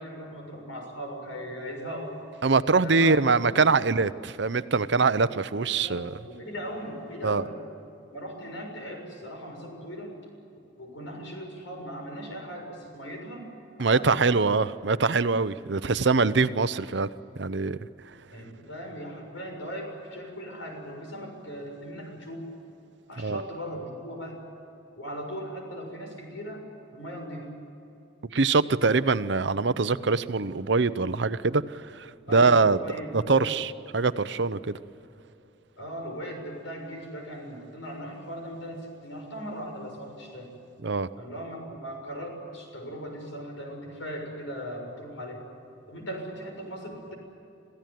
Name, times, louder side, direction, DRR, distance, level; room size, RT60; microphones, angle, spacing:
voice 1, 0.0-2.2 2.8-3.6 5.8-7.6 8.1-10.1 10.8-13.5 13.8-14.4 18.3-22.4 23.1-24.4 25.0-27.5 32.3-33.6 35.8-40.6 41.1-45.4 45.9-47.1, equal, 85° left, 3 dB, 6.7 m, -38 dB
voice 2, 2.4-6.1 7.2-7.4 13.8-17.1 17.4-17.8 23.2-23.4 28.3-31.6 31.9-32.1 32.3-34.7 40.8-41.1, right 4 dB, 65° right, 14 dB, 0.7 m, -23 dB
27.0 x 16.0 x 9.3 m, 2.9 s
head